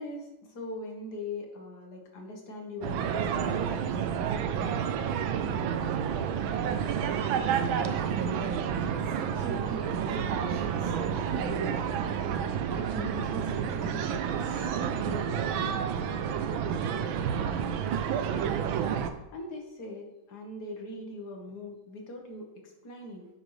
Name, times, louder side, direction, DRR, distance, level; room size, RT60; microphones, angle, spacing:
voice 1, 0.0-4.0 19.3-23.3, left 2 dB, 55° left, 1 dB, 2.1 m, -41 dB
sound 1, 2.8-19.1, right 7 dB, 85° right, 1.5 m, -30 dB
voice 2, 7.3-8.1 9.0-11.8 12.7-15.8, right 3 dB, 55° right, 3 dB, 1.1 m, -41 dB
11.0 x 7.3 x 3.3 m, 0.95 s
omnidirectional pair, 2.1 m